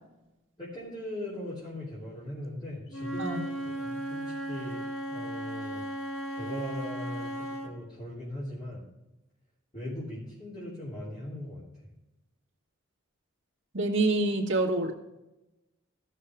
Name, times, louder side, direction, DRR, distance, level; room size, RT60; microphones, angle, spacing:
voice 1, 0.6-4.8 5.1-5.8 6.3-8.8 9.7-11.6, left 1 dB, 25° left, -8 dB, 3.1 m, -39 dB
Wind instrument woodwind instrument, 2.9-7.7, right 1 dB, 80° left, 1.4 m, -36 dB
voice 2, 13.7-14.9, right 2 dB, 60° right, -1 dB, 2.0 m, -26 dB
15.0 x 6.6 x 3.5 m, 0.98 s
head